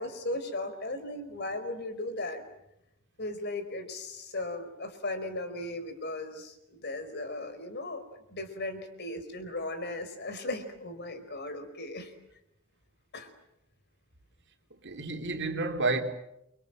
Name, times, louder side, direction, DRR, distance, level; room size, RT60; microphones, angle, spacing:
voice 1, 0.0-2.4 3.2-12.1 13.1-13.3, left 2 dB, 50° left, 4.7 m, -37 dB
voice 2, 14.7-16.0, right 3 dB, 60° right, 3.5 m, -30 dB
29.0 x 25.0 x 7.8 m
head